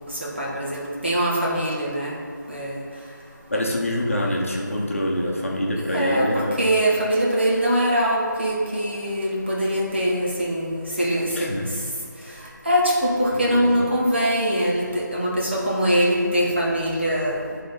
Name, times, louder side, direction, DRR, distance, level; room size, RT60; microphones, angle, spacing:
voice 1, 0.1-2.2 2.5-2.8 5.9-11.5 12.6-17.4, equal, 35° right, -5 dB, 1.3 m, -22 dB
voice 2, 3.5-6.7 11.3-11.7 13.4-13.9, left 1 dB, 45° left, -2 dB, 1.0 m, -25 dB
9.3 x 3.8 x 5.4 m, 2.2 s
figure-of-eight pair, 180°, 10 cm